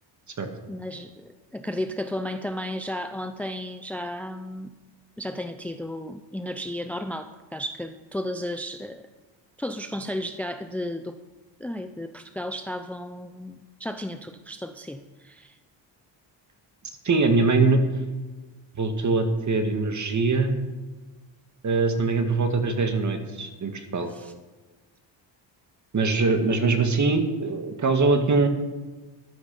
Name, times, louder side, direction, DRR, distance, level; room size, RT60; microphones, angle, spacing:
voice 1, 0.7-4.7 5.2-9.0 9.6-11.2 11.6-15.6 24.0-24.3, left 1 dB, 5° left, 9 dB, 0.6 m, -34 dB
voice 2, 17.0-17.8 18.8-20.5 21.6-24.1 25.9-28.5, right 3 dB, 35° right, 6 dB, 2.1 m, -22 dB
14.0 x 12.0 x 5.5 m, 1.2 s
cardioid pair, 105°, 47 cm